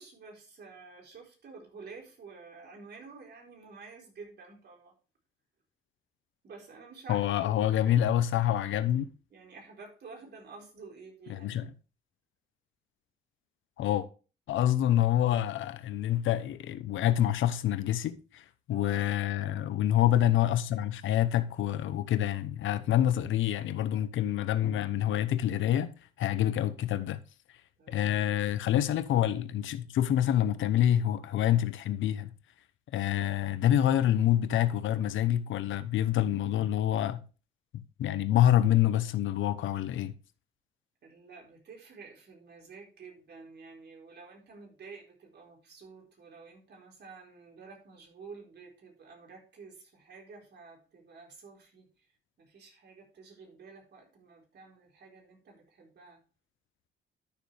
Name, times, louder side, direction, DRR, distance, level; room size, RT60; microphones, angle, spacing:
voice 1, 0.0-4.9 6.4-8.6 9.3-11.6 18.7-19.0 27.8-28.0 41.0-52.1 52.4-56.2, right 4 dB, 55° right, 4.2 m, -50 dB
voice 2, 7.1-9.1 11.3-11.7 13.8-14.1 14.5-25.9 26.2-27.2 27.9-32.3 32.9-37.2 38.0-40.1, left 11 dB, 75° left, 0.9 m, -27 dB
12.0 x 6.7 x 3.4 m
cardioid pair, 90°, 20 cm